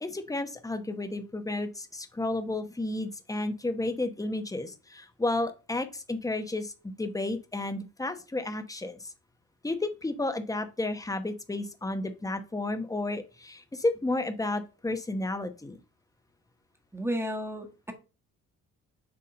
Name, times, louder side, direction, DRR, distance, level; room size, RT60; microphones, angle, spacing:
voice 1, 0.0-9.1 9.6-15.8, left 2 dB, 10° left, 1.0 m, -32 dB
voice 2, 16.9-17.9, equal, 10° right, 1.5 m, -32 dB
6.9 x 3.6 x 5.2 m
cardioid pair, 90°, 30 cm